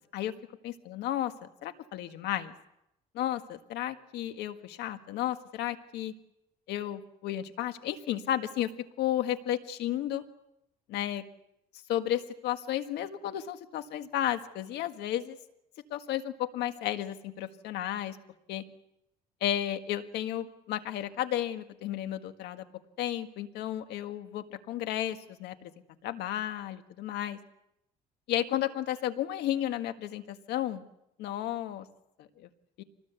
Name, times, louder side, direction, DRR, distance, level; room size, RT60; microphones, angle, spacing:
voice 1, 0.6-2.5 3.1-6.1 6.7-8.7 9.0-10.2 10.9-11.2 11.9-15.4 15.9-18.2 18.5-18.6 19.4-22.6 23.0-25.7 26.0-27.4 28.3-30.8 31.2-31.9 32.2-32.5 32.8-32.9, left 12 dB, 80° left, 9 dB, 1.7 m, -33 dB
25.5 x 19.5 x 8.2 m, 0.85 s
cardioid pair, 110°, 17 cm